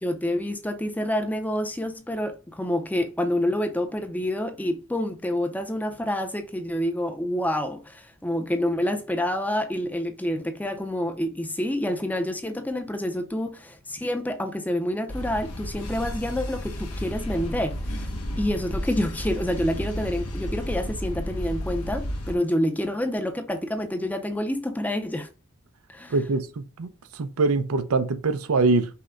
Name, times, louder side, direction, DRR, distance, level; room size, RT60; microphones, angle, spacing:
voice 1, 0.0-18.1 18.4-25.3 25.9-26.1, left 1 dB, 5° left, 0.5 m, -28 dB
sound 1, 15.1-22.3, equal, 85° left, 1.0 m, -32 dB
voice 2, 26.1-26.9 27.1-28.9, right 3 dB, 85° right, 0.6 m, -23 dB
5.6 x 2.2 x 3.8 m
head